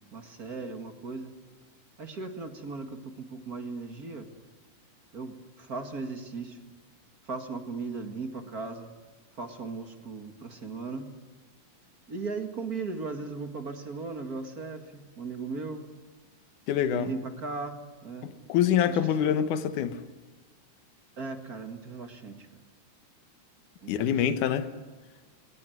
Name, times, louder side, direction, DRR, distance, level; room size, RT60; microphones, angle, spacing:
voice 1, 0.1-1.3 2.0-4.3 5.1-6.6 7.2-8.9 9.4-11.1 12.1-15.9 16.9-18.3 18.9-19.3 21.2-22.4 23.8-24.1, right 4 dB, 35° right, 5 dB, 1.8 m, -37 dB
voice 2, 16.7-17.1 18.2-20.0 23.9-24.7, left 9 dB, 70° left, 10 dB, 2.6 m, -25 dB
21.5 x 20.5 x 9.3 m, 1.3 s
omnidirectional pair, 3.8 m